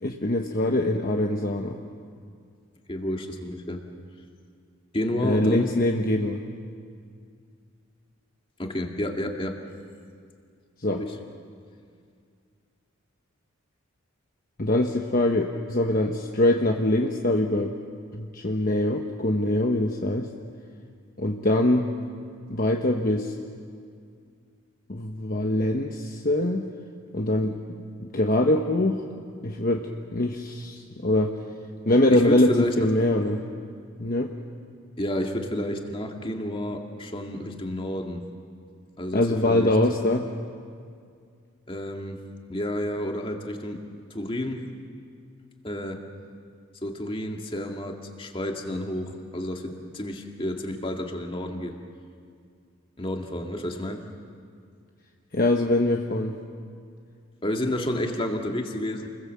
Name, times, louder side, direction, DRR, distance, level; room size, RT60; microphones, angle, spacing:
voice 1, 0.0-1.8 5.2-6.4 10.8-11.0 14.6-17.7 18.1-20.3 21.2-21.9 22.5-23.3 24.9-26.7 27.1-29.0 29.4-31.3 31.9-33.4 34.0-34.3 39.1-40.3 55.3-56.4, left 1 dB, 40° left, 2 dB, 1.1 m, -23 dB
voice 2, 2.9-3.8 4.9-5.7 8.6-9.6 10.9-11.2 32.1-32.9 35.0-38.2 39.0-39.8 41.7-42.2 42.5-43.8 44.1-44.6 45.6-46.0 46.8-51.8 53.0-54.0 57.4-59.1, left 1 dB, 25° left, 2 dB, 2.0 m, -30 dB
28.5 x 21.5 x 7.5 m, 2.2 s
head